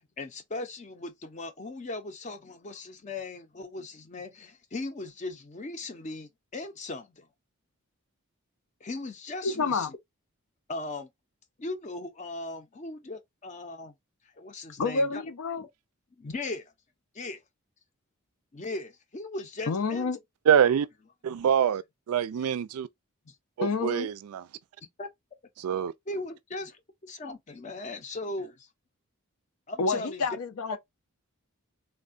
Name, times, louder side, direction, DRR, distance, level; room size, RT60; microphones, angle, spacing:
voice 1, 0.2-7.3 8.8-10.0 10.7-11.1 11.6-13.9 14.4-15.2 15.6-15.7 16.2-16.6 17.1-17.4 18.5-20.2 22.4-22.5 23.3-23.4 25.0-25.1 26.1-28.7 29.7-30.2, left 2 dB, 35° left, 0.5 m, -38 dB
voice 2, 9.4-9.9 14.8-15.7 19.7-20.2 23.6-24.1 25.7-25.8 29.8-30.8, left 4 dB, 80° left, 0.5 m, -29 dB
voice 3, 20.5-20.9 21.2-22.9 23.6-24.5 25.6-25.9, right 8 dB, 85° right, 0.3 m, -25 dB
3.4 x 2.2 x 2.4 m
head